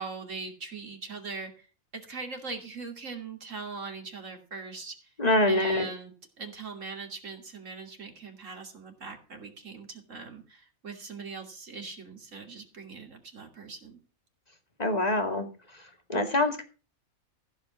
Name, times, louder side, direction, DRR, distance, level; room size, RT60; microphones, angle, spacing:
voice 1, 0.0-1.7 1.9-5.1 5.5-14.0, right 4 dB, 65° right, 3 dB, 3.0 m, -41 dB
voice 2, 5.2-5.9 14.8-15.5 16.1-16.6, left 1 dB, 30° left, 5 dB, 2.2 m, -24 dB
15.5 x 5.5 x 8.1 m, 0.36 s
omnidirectional pair, 1.4 m